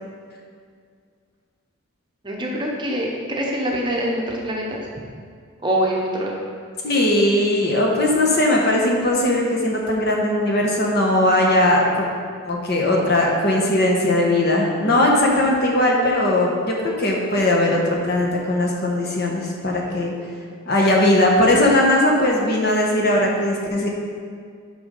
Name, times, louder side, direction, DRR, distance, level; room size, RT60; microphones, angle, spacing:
voice 1, 2.2-4.9 5.6-6.3, equal, 20° right, -2 dB, 0.8 m, -24 dB
voice 2, 6.8-12.1 12.4-20.1 20.7-23.9, left 1 dB, 50° left, -1 dB, 1.2 m, -19 dB
6.9 x 5.5 x 5.3 m, 2.1 s
head